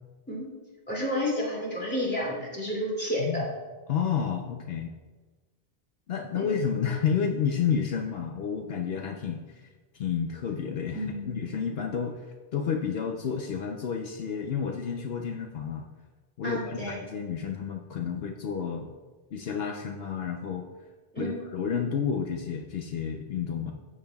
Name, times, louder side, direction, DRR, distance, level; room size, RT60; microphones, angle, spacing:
voice 1, 0.9-3.5 6.3-6.6 10.9-11.4 16.4-17.0 21.1-21.3, left 1 dB, 10° left, -5 dB, 2.5 m, -31 dB
voice 2, 3.9-4.9 6.1-9.6 9.9-12.3 12.5-15.9 16.4-18.9 19.3-20.7 21.2-23.7, left 7 dB, 70° left, 3 dB, 0.9 m, -30 dB
12.5 x 8.6 x 2.3 m, 1.3 s
omnidirectional pair, 1.1 m